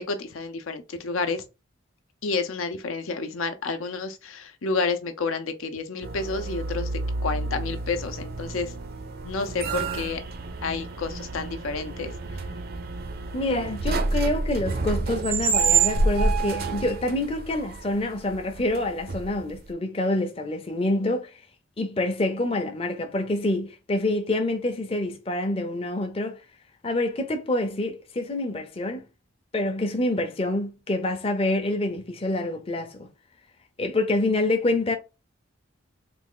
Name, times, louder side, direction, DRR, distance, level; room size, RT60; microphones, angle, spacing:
voice 1, 0.1-1.4 2.2-6.9 7.2-8.7 9.2-10.2 10.6-12.1, left 4 dB, 80° left, 0.6 m, -30 dB
sound 1, 6.0-19.7, right 4 dB, 50° right, 0.5 m, -28 dB
voice 2, 13.3-21.4 21.8-26.4 26.8-29.1 29.5-33.1 33.8-35.0, left 2 dB, 30° left, 0.5 m, -27 dB
3.4 x 2.4 x 3.7 m
head